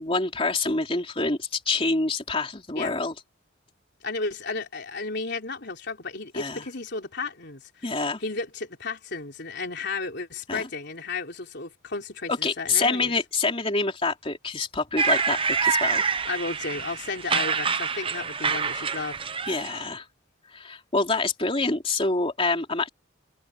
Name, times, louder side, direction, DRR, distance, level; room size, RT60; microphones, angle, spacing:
voice 1, 0.0-3.1 6.3-6.6 7.8-8.2 10.5-10.7 12.3-16.0 19.5-20.0 20.5-22.9, left 3 dB, 30° left, 3.2 m, -26 dB
voice 2, 4.0-7.8 8.2-13.1 16.3-19.2, left 3 dB, 55° left, 3.8 m, -33 dB
sound 1, 15.0-19.9, right 5 dB, 25° right, 0.8 m, -26 dB
head